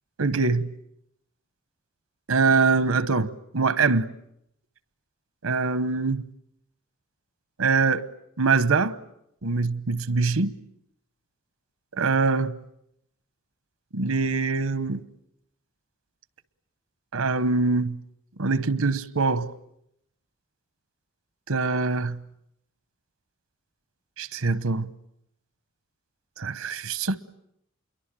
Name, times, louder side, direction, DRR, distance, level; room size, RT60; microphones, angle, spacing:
voice 1, 0.2-0.7 2.3-4.1 5.4-6.2 7.6-8.1 8.4-9.0 9.4-10.5 11.9-12.5 13.9-15.0 17.1-18.0 18.4-19.5 21.5-22.2 24.2-24.9 26.4-27.2, right 4 dB, 80° right, 1.0 m, -23 dB
28.5 x 23.0 x 8.9 m
head